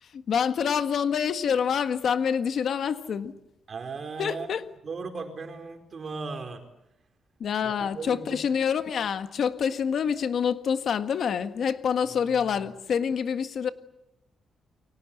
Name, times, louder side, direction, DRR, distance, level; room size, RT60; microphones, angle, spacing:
voice 1, 0.0-3.3 4.2-4.6 7.4-13.7, left 7 dB, 55° left, 9 dB, 1.6 m, -27 dB
voice 2, 3.7-4.5 4.8-6.6 7.6-8.4, right 4 dB, 40° right, 5 dB, 4.7 m, -37 dB
30.0 x 23.5 x 8.0 m, 0.87 s
cardioid pair, 140°, 0 cm